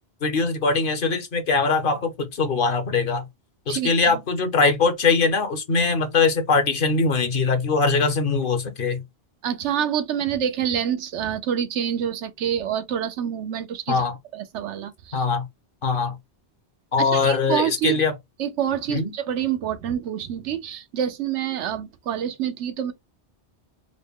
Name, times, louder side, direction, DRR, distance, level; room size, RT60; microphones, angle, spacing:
voice 1, 0.2-3.2 3.7-9.0 13.9-14.2 15.1-15.4 15.8-16.1 16.9-18.1 18.9-19.1, left 4 dB, 55° left, 1.0 m, -22 dB
voice 2, 3.7-4.2 9.4-15.2 17.0-18.0 18.4-22.9, right 9 dB, 85° right, 1.0 m, -27 dB
3.8 x 2.1 x 3.5 m
omnidirectional pair, 1.1 m